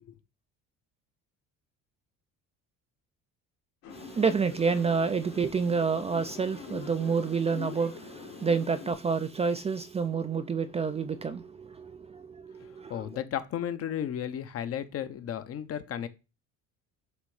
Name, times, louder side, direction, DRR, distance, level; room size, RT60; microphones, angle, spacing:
sound 1, 3.8-8.9, left 6 dB, 70° left, 1.9 m, -44 dB
voice 1, 3.9-13.1, right 5 dB, 20° right, 0.4 m, -29 dB
voice 2, 12.9-16.1, left 9 dB, 45° left, 0.8 m, -34 dB
8.0 x 3.0 x 4.9 m
cardioid pair, 115°, 32 cm